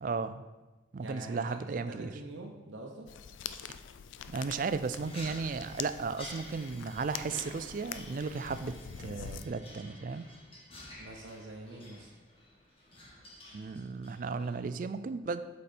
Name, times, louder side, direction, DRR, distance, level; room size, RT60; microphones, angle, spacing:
voice 1, 0.0-0.5 0.9-2.1 4.3-10.3 13.5-15.4, right 4 dB, 45° right, 12 dB, 0.3 m, -35 dB
voice 2, 1.0-3.1 11.0-12.1, right 2 dB, 90° right, -1 dB, 0.8 m, -45 dB
sound 1, 3.1-9.5, left 8 dB, 85° left, 0.4 m, -45 dB
sound 2, 5.0-14.7, left 1 dB, 30° left, 1.4 m, -51 dB
8.2 x 4.3 x 4.3 m, 1.1 s
head